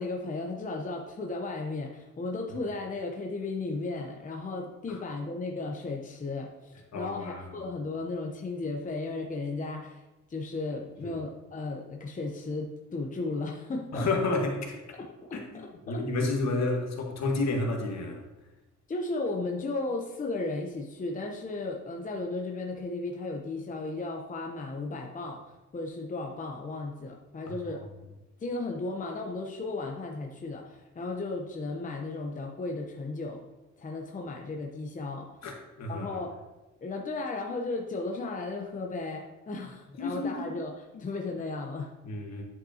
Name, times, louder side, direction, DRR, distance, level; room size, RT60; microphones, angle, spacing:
voice 1, 0.0-10.0 10.3-14.1 15.0-16.3 18.9-25.4 25.7-27.8 28.4-33.4 33.8-35.3 35.9-36.4 36.8-40.7 41.0-41.9, left 3 dB, 25° left, 1 dB, 0.8 m, -35 dB
voice 2, 6.9-7.4 11.0-11.2 13.9-15.0 15.3-18.2 35.4-36.1 40.0-40.5 42.0-42.4, left 2 dB, 60° left, 1 dB, 1.5 m, -31 dB
9.5 x 5.1 x 2.9 m, 1.0 s
cardioid pair, 90°, 30 cm